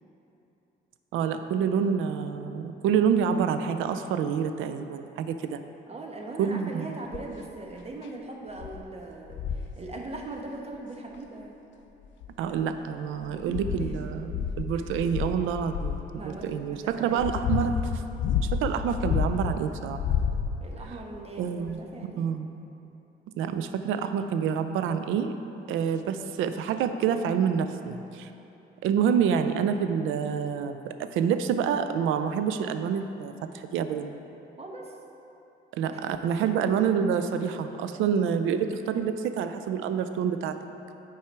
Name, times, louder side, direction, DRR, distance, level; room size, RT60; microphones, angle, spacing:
voice 1, 1.1-5.6 6.4-6.9 12.4-16.0 16.2-17.8 18.4-20.2 21.4-21.8 22.2-22.5 23.4-25.4 25.7-28.3 28.8-34.2 35.7-40.6, right 7 dB, 85° right, 9 dB, 0.4 m, -27 dB
voice 2, 5.9-11.6 13.3-13.9 14.7-14.8 16.1-17.3 20.6-22.3 34.6-34.9 35.8-36.0 36.4-36.6, right 2 dB, 30° right, 0 dB, 1.1 m, -40 dB
sound 1, 7.1-7.4 8.0-8.1 8.6-8.8 9.3-9.7 11.1-11.2 12.0-12.7 13.2-16.1 16.8-19.6 19.9-20.8 21.7-21.8, left 7 dB, 70° left, 0.5 m, -30 dB
8.6 x 4.8 x 4.6 m, 2.9 s
cardioid pair, 90°, 20 cm